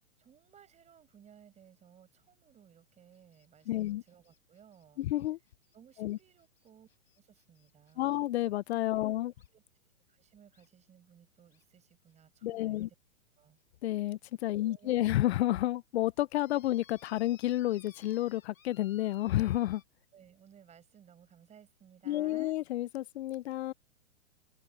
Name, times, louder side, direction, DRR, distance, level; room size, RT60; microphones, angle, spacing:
voice 1, 0.2-5.0 5.7-6.9 7.2-8.2 9.0-9.2 9.5-9.6 10.1-13.0 13.4-13.6 14.6-15.1 20.1-22.5, right 8 dB, 15° right, 5.4 m, -60 dB
sound 1, 3.1-8.2 9.4-9.5 10.5-10.7 11.5-11.6 12.1-12.2 12.7-12.9 13.6-13.7 14.2-14.3 14.9-15.0 15.3-15.4 16.3-19.8, left 8 dB, 85° left, 5.8 m, -61 dB
voice 2, 3.7-4.0 5.0-5.4 6.0-6.2 8.0-9.3 12.4-12.9 13.8-19.8 22.1-23.7, left 14 dB, 55° left, 0.6 m, -30 dB
open air
hypercardioid pair, 140°, 40 cm